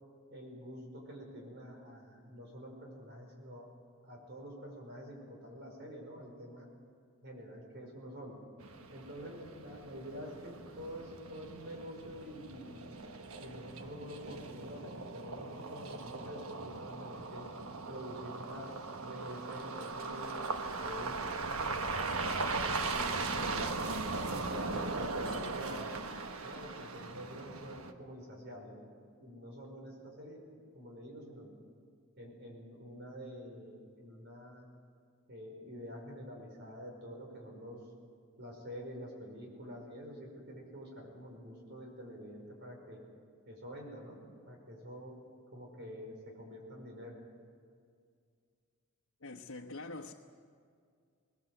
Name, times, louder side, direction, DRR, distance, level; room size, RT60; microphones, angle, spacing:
voice 1, 0.3-3.7 4.0-6.7 7.2-8.4 8.9-12.9 13.4-17.5 17.9-22.3 22.9-23.8 24.3-26.1 26.4-28.8 29.2-30.4 30.7-31.5 32.2-34.6 35.3-37.8 38.4-43.0 43.5-45.1 45.5-47.2, equal, 55° right, 5.3 m, -47 dB
sound 1, 8.6-27.9, right 3 dB, 80° right, 1.3 m, -39 dB
voice 2, 49.2-50.1, left 2 dB, 85° left, 1.1 m, -44 dB
21.0 x 20.0 x 7.9 m
head